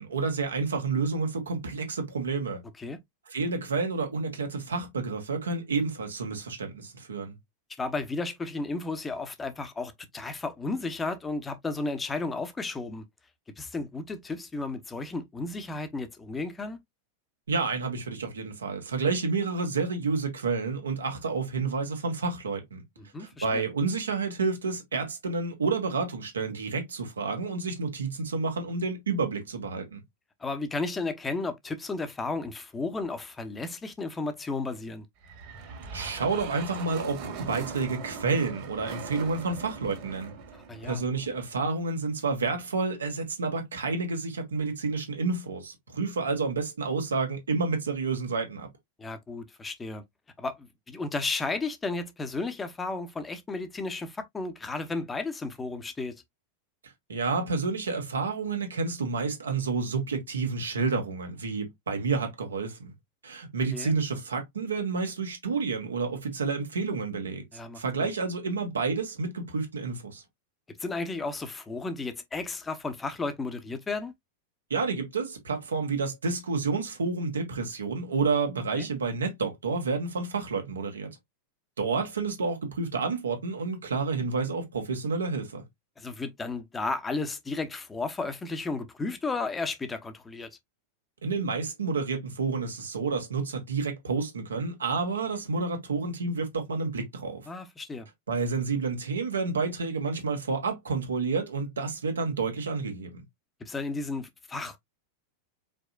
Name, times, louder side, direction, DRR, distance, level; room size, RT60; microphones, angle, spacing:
voice 1, 0.0-2.6 3.3-7.4 17.5-22.8 23.2-30.0 35.9-40.3 40.8-48.7 57.1-62.9 63.2-67.4 67.7-70.2 74.7-81.2 81.8-85.6 91.2-97.5 98.3-103.2, right 4 dB, 70° right, 1.6 m, -30 dB
voice 2, 7.8-13.1 13.6-16.8 23.0-23.6 30.4-35.1 40.5-41.0 49.0-50.0 50.4-56.2 63.7-63.9 67.5-68.1 70.8-74.1 78.8-78.9 86.0-90.5 97.5-98.1 103.6-104.8, left 3 dB, 15° left, 1.0 m, -33 dB
sound 1, 35.2-41.6, right 5 dB, 45° right, 1.9 m, -41 dB
5.2 x 4.0 x 2.4 m
figure-of-eight pair, 90°, 0 cm